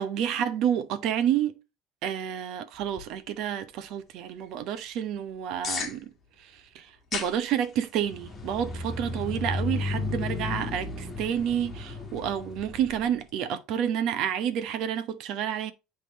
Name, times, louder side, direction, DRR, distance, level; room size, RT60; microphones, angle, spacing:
voice 1, 0.0-1.6 2.0-6.1 6.4-15.7, right 9 dB, 55° right, 0.9 m, -29 dB
sound 1, 2.7-13.3, left 6 dB, 30° left, 1.4 m, -43 dB
sound 2, 8.0-13.0, left 3 dB, 15° left, 1.7 m, -34 dB
8.3 x 3.6 x 4.1 m
cardioid pair, 155°, 0 cm